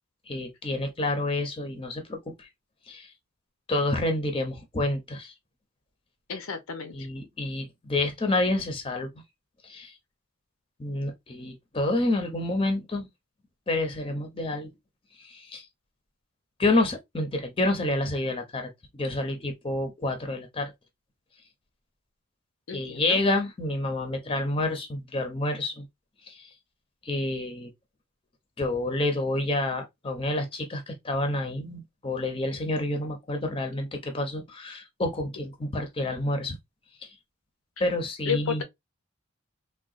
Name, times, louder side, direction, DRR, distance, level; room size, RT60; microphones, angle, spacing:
voice 1, 0.3-2.5 2.9-3.1 3.7-5.3 6.9-9.1 9.6-9.9 10.8-13.1 13.7-14.7 15.2-15.6 16.6-20.7 22.7-25.8 26.3-26.5 27.0-27.7 28.6-36.6 37.8-38.6, left 2 dB, 25° left, 0.6 m, -28 dB
voice 2, 6.3-7.0 22.7-23.2 38.2-38.6, left 7 dB, 85° left, 0.6 m, -31 dB
3.7 x 2.2 x 2.4 m
head